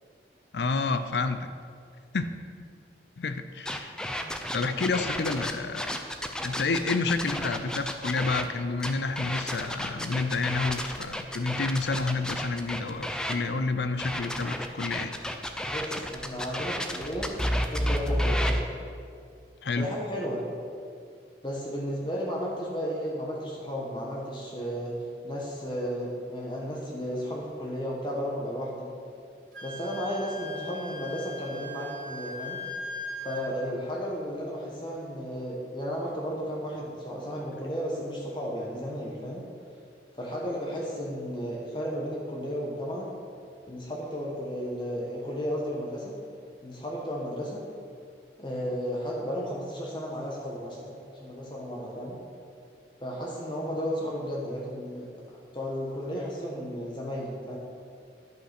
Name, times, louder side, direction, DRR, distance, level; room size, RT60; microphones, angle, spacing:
voice 1, 0.5-1.5 2.1-2.3 3.2-4.0 4.5-5.9 6.4-15.1 19.6-19.9, left 3 dB, 75° left, 10 dB, 0.6 m, -29 dB
sound 1, 3.7-8.4 8.8-13.4 14.0-18.6, equal, 5° left, 0.4 m, -31 dB
voice 2, 15.7-17.3 17.6-18.6 19.7-20.4 21.4-25.0 25.2-28.9 29.6-32.6 33.2-39.5 40.1-43.1 43.7-46.2 46.6-47.6 48.4-52.2 53.0-57.6, equal, 25° left, -3 dB, 1.2 m, -34 dB
Wind instrument woodwind instrument, 29.5-33.5, left 1 dB, 55° right, 2.1 m, -39 dB
10.5 x 5.6 x 5.9 m, 2.3 s
head